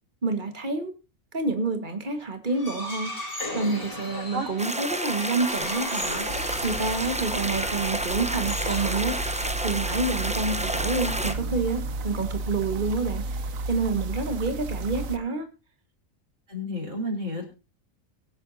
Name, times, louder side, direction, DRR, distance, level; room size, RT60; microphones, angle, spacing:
voice 1, 0.2-0.9 1.3-3.1 3.5-6.3 6.6-9.2 9.6-13.4 13.7-15.5, right 3 dB, 35° right, 7 dB, 1.9 m, -28 dB
sound 1, 2.5-9.7, left 1 dB, 45° left, 4.1 m, -38 dB
voice 2, 4.1-4.5 7.3-7.4 16.5-17.5, equal, 65° right, 0 dB, 4.9 m, -32 dB
sound 2, 4.6-11.3, right 1 dB, 5° right, 0.8 m, -30 dB
sound 3, 6.3-15.2, right 2 dB, 80° right, 1.4 m, -33 dB
23.5 x 8.3 x 2.8 m, 0.30 s
omnidirectional pair, 1.4 m